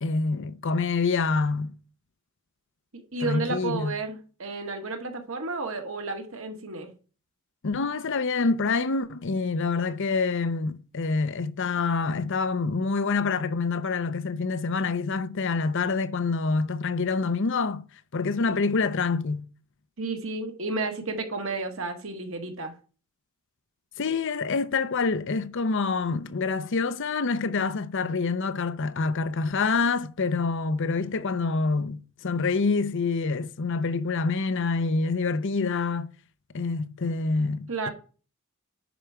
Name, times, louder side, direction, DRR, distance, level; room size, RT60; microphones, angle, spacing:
voice 1, 0.0-1.7 3.2-4.0 7.6-17.8 18.1-19.5 24.0-36.1 36.5-37.9, left 4 dB, 60° left, 0.7 m, -26 dB
voice 2, 2.9-6.9 18.5-18.6 20.0-22.7 37.7-37.9, right 3 dB, 65° right, 1.8 m, -32 dB
10.0 x 5.0 x 4.5 m
head